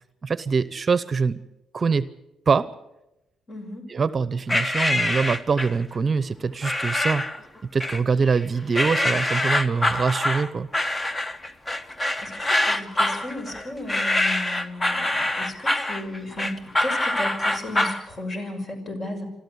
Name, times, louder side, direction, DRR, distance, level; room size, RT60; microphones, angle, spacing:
voice 1, 0.2-1.4 1.7-2.1 2.5-2.7 3.9-7.2 7.7-10.7, right 5 dB, 35° right, 15 dB, 0.8 m, -24 dB
voice 2, 3.5-3.9 12.2-19.3, left 1 dB, 40° left, 5 dB, 6.2 m, -34 dB
sound 1, 4.5-5.8 6.6-7.4 7.8-8.4 8.7-18.0, left 1 dB, 20° left, 1.2 m, -25 dB
26.5 x 13.0 x 8.1 m, 0.91 s
cardioid pair, 90°, 0 cm